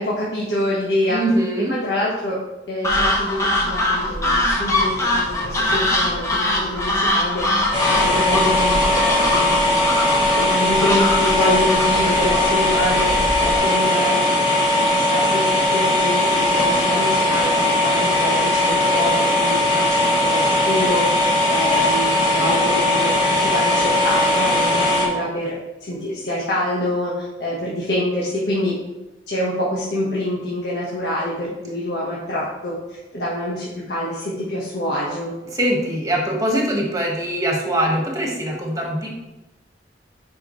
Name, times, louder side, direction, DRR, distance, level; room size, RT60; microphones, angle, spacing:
voice 1, 0.0-1.2 1.7-2.4 2.7-7.5 7.9-9.9 10.3-13.1 13.4-14.4 14.7-25.5 25.8-28.7 29.3-35.3, left 1 dB, 70° left, -7 dB, 1.5 m, -26 dB
voice 2, 1.1-1.8 22.4-22.5 35.5-39.1, right 1 dB, 20° right, -1 dB, 1.7 m, -22 dB
sound 1, 2.8-13.6, left 1 dB, 20° left, 1.2 m, -22 dB
sound 2, 7.7-25.0, left 1 dB, 35° left, 2.8 m, -19 dB
10.5 x 5.0 x 3.2 m, 1.0 s
head